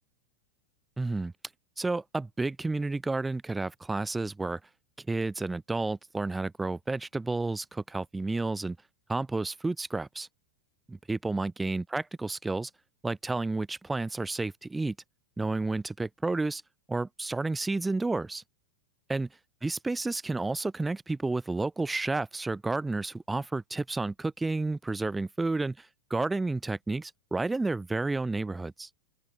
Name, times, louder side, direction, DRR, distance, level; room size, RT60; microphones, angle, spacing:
voice 1, 1.0-1.3 1.8-4.6 5.1-8.8 9.1-10.3 10.9-12.7 13.0-15.0 15.4-16.6 16.9-18.4 19.1-19.3 19.6-28.9, right 3 dB, 10° right, 1.8 m, -31 dB
open air
figure-of-eight pair, 90°, 0 cm